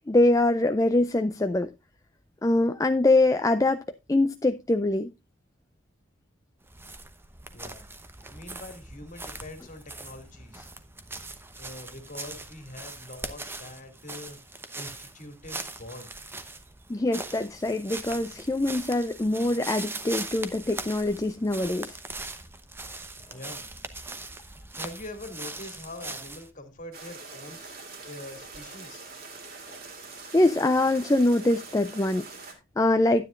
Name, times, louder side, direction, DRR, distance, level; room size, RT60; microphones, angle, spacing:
voice 1, 0.1-1.7 2.4-3.8 4.1-5.1 16.9-22.0 30.3-33.3, left 2 dB, 15° left, 0.4 m, -24 dB
sound 1, 6.6-26.5, right 2 dB, 10° right, 0.9 m, -41 dB
voice 2, 7.5-7.9 8.3-10.7 11.5-14.4 14.7-16.1 23.2-23.7 24.4-29.0, left 1 dB, 40° left, 2.3 m, -44 dB
sound 2, 26.9-32.5, right 4 dB, 45° right, 2.9 m, -44 dB
12.5 x 9.5 x 2.5 m
head